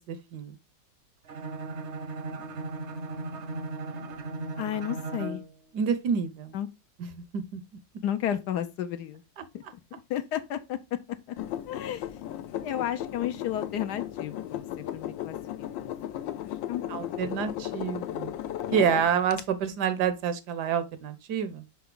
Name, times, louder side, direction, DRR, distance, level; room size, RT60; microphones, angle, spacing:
voice 1, 0.1-0.6 5.7-6.5 7.0-7.6 9.4-9.5 16.9-18.3 18.7-21.6, right 7 dB, 70° right, 1.2 m, -28 dB
Bowed string instrument, 1.3-5.5, right 3 dB, 50° right, 0.9 m, -36 dB
voice 2, 4.6-5.4 6.5-6.7 8.0-9.2 9.5-9.6 9.9-10.8 11.3-11.4 11.7-12.1 12.6-15.4 15.8-16.2 16.7-16.8 17.2-17.5, left 10 dB, 70° left, 1.1 m, -33 dB
sound 1, 11.4-19.4, left 12 dB, 90° left, 1.3 m, -35 dB
5.8 x 5.2 x 3.7 m
omnidirectional pair, 2.0 m